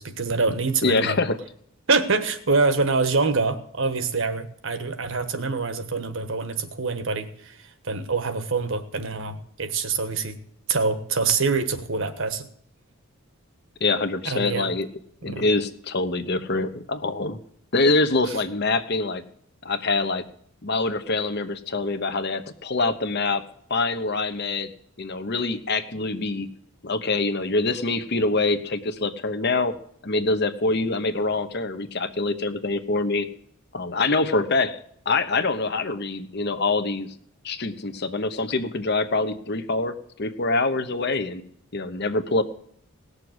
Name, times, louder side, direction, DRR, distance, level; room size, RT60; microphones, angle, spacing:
voice 1, 0.0-1.2 1.9-10.4 10.7-12.5 14.2-14.7 15.2-15.4 18.3-18.4, right 4 dB, 60° right, 10 dB, 1.3 m, -25 dB
voice 2, 0.8-1.4 13.8-14.9 15.2-17.4 17.7-19.2 19.6-20.2 20.6-23.4 23.7-24.7 25.0-26.5 26.8-29.7 30.0-33.3 33.7-34.8 35.0-37.1 37.4-41.4 41.7-42.4, left 3 dB, 50° left, 10 dB, 1.0 m, -25 dB
18.5 x 6.8 x 8.0 m, 0.65 s
head